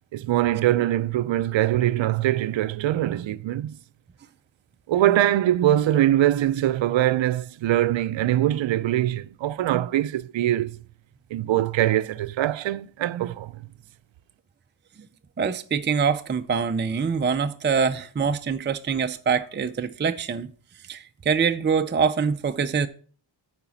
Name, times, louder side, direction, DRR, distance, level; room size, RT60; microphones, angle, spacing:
voice 1, 0.1-3.8 4.9-10.8 11.3-13.6, right 13 dB, 70° right, 0.6 m, -23 dB
voice 2, 15.4-20.5 20.9-22.9, right 6 dB, 25° right, 0.5 m, -24 dB
9.0 x 5.1 x 7.1 m
cardioid pair, 100°, 47 cm